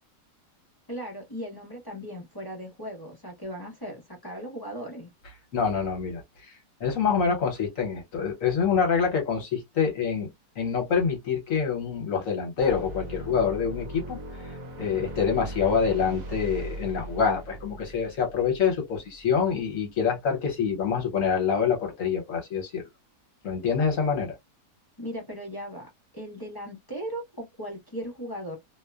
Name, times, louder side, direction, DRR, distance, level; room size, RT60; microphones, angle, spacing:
voice 1, 0.9-5.1 25.0-25.9 26.1-28.6, equal, 25° left, 0.5 m, -37 dB
voice 2, 5.5-14.2 14.4-14.5 14.8-22.8 23.4-24.3, left 6 dB, 60° left, 1.2 m, -26 dB
sound 1, 12.6-19.2, right 1 dB, 70° right, 1.1 m, -39 dB
2.8 x 2.1 x 2.3 m
omnidirectional pair, 1.7 m